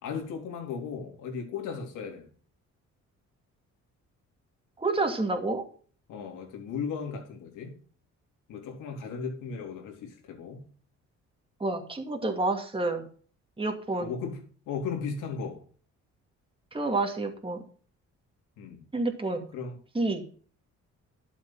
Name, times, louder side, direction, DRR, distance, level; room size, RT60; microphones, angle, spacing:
voice 1, 0.0-2.3 6.1-7.7 8.5-10.6 14.0-14.4 14.7-15.6 18.6-18.8 19.5-19.8, left 6 dB, 90° left, 3.8 m, -36 dB
voice 2, 4.8-5.6 11.6-13.0 13.6-14.1 16.7-17.6 18.9-19.5 19.9-20.2, right 2 dB, 20° right, 2.5 m, -29 dB
12.0 x 7.4 x 5.9 m
cardioid pair, 90°, 30 cm